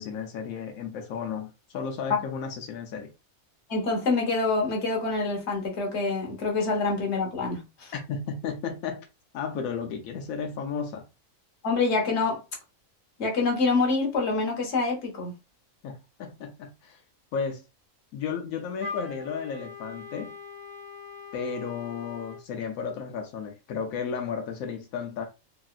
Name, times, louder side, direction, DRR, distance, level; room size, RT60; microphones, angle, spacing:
voice 1, 0.0-3.1 7.9-9.0 9.3-11.1 15.8-17.0 17.3-17.6 18.1-20.3 21.3-25.3, left 6 dB, 90° left, 1.1 m, -33 dB
voice 2, 3.7-7.9 11.6-12.4 13.2-15.3, left 3 dB, 55° left, 1.3 m, -26 dB
Wind instrument woodwind instrument, 18.8-22.4, left 5 dB, 40° right, 0.7 m, -41 dB
3.0 x 2.7 x 2.4 m
omnidirectional pair, 1.4 m